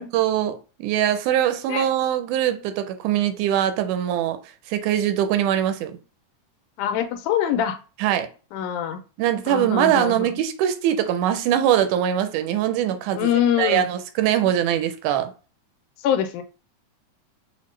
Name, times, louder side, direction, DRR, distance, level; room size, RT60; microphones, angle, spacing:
voice 1, 0.0-4.4 4.7-6.0 8.0-8.3 9.2-13.3 13.6-15.3, right 10 dB, 85° right, 2.0 m, -22 dB
voice 2, 6.8-7.8 8.5-9.0 9.5-10.3 13.1-13.9 16.0-16.4, left 10 dB, 90° left, 2.1 m, -24 dB
6.1 x 2.1 x 3.2 m
omnidirectional pair, 3.5 m